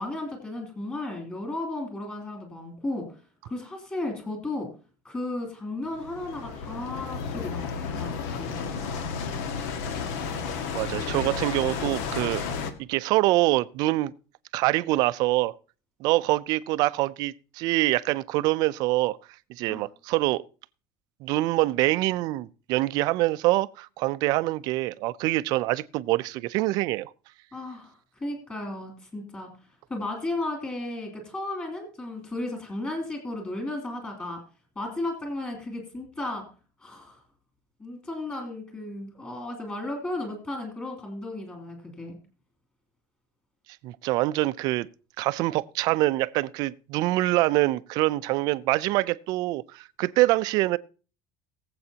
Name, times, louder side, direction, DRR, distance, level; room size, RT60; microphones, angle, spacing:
voice 1, 0.0-3.0 3.4-4.7 5.0-8.5 19.7-19.8 27.5-27.9 28.2-29.5 29.9-34.4 34.7-36.4 36.8-37.2 37.8-42.2, left 2 dB, 20° left, 3.0 m, -34 dB
sound 1, 5.9-12.7, left 5 dB, 80° left, 1.5 m, -32 dB
voice 2, 10.7-12.4 12.9-14.1 14.5-15.5 16.0-19.2 19.6-20.4 21.2-27.1 43.8-44.9 45.2-50.8, right 18 dB, 55° right, 0.5 m, -25 dB
22.0 x 7.8 x 2.8 m
cardioid pair, 160°, 8 cm